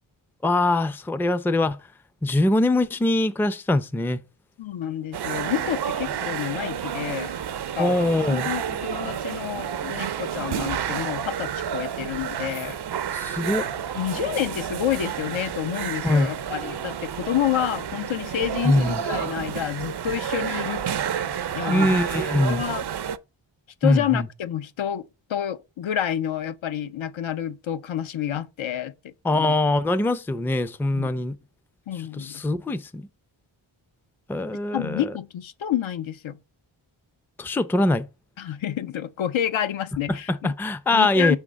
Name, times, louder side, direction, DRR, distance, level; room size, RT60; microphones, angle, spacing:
voice 1, 0.4-1.8 2.2-4.2 7.8-8.5 13.1-13.6 16.0-16.3 18.6-19.0 21.7-22.6 23.8-24.3 29.2-31.4 32.2-33.0 34.3-35.1 37.4-38.0 40.3-41.4, left 2 dB, 5° left, 0.4 m, -22 dB
voice 2, 4.6-7.3 7.8-12.8 13.6-13.7 13.9-20.9 21.5-22.0 22.5-22.8 23.8-29.6 30.9-31.2 31.9-32.4 34.7-36.4 38.4-40.5 40.9-41.4, left 10 dB, 70° left, 0.6 m, -29 dB
sound 1, 5.1-23.2, right 8 dB, 55° right, 0.5 m, -30 dB
5.4 x 3.6 x 5.0 m
wide cardioid pair, 65°, 48 cm